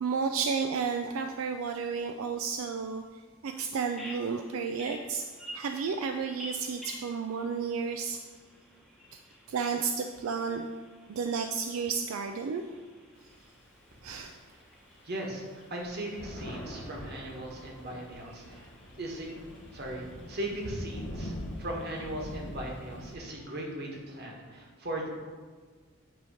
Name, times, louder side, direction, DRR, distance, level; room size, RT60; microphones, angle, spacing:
voice 1, 0.0-3.0 3.4-5.2 5.5-8.2 9.1-9.2 9.5-10.7 11.1-12.6 14.0-14.4, right 5 dB, 80° right, 6 dB, 0.4 m, -32 dB
Bird vocalization bird call bird song, 3.9-23.7, equal, ahead, 0.9 m, -52 dB
Thunder, 13.2-14.4 15.0-15.1 15.3-23.1, equal, 60° left, 1.0 m, -43 dB
voice 2, 15.0-18.7 19.0-19.3 19.7-21.3 21.6-25.1, right 1 dB, 50° right, -1 dB, 1.4 m, -38 dB
9.1 x 3.0 x 5.6 m, 1.5 s
head